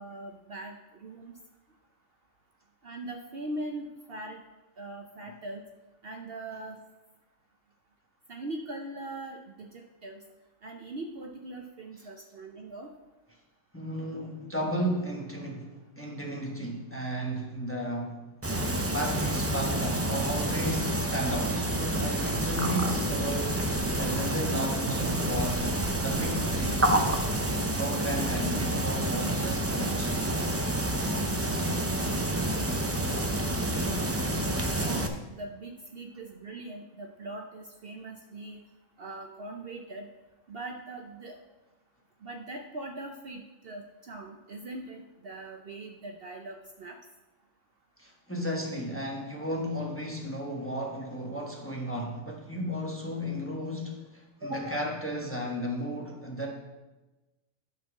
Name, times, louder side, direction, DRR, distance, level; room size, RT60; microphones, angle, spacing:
voice 1, 0.0-1.3 2.8-4.4 4.8-5.6 6.0-6.8 8.3-10.2 10.6-12.9 25.6-25.7 34.8-38.6 39.0-40.1 40.5-41.3 42.2-47.0 54.4-54.8, right 2 dB, 55° right, 0.8 m, -41 dB
voice 2, 13.7-18.2 18.9-23.6 24.0-25.7 26.0-26.9 27.7-30.1 48.0-56.5, equal, 10° left, 1.1 m, -34 dB
sound 1, 18.4-35.1, right 1 dB, 20° right, 0.4 m, -28 dB
11.0 x 4.4 x 5.9 m
omnidirectional pair, 1.3 m